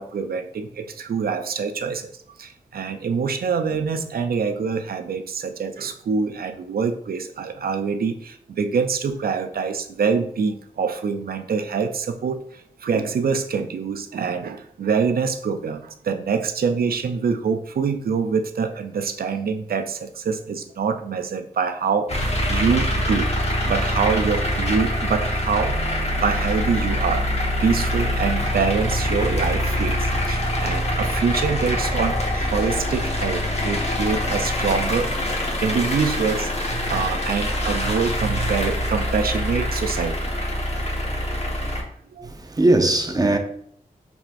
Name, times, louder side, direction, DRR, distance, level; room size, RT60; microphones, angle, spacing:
voice 1, 0.0-2.1 2.4-23.3 23.6-27.3 27.6-40.3 42.1-42.3, right 5 dB, 75° right, 0.5 m, -25 dB
sound 1, 22.1-41.8, left 1 dB, 45° left, 1.1 m, -24 dB
voice 2, 42.2-43.4, right 2 dB, 25° right, 0.7 m, -19 dB
4.8 x 3.4 x 2.5 m
cardioid pair, 50°, 15 cm